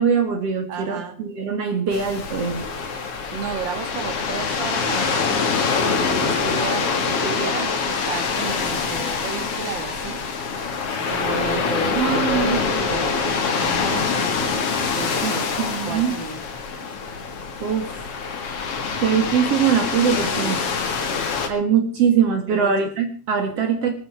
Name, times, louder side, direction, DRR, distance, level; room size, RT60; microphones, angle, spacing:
voice 1, 0.0-2.6 11.9-12.6 15.2-16.1 17.6-18.0 19.0-20.6 21.5-23.9, right 7 dB, 60° right, 6 dB, 2.7 m, -22 dB
voice 2, 0.7-1.2 3.3-10.2 11.1-14.6 14.9-15.5 15.9-16.4 22.5-22.9, right 6 dB, 40° right, 6 dB, 2.6 m, -33 dB
sound 1, 1.9-21.5, left 5 dB, 55° left, 2.9 m, -25 dB
20.5 x 13.5 x 4.8 m, 0.41 s
omnidirectional pair, 3.3 m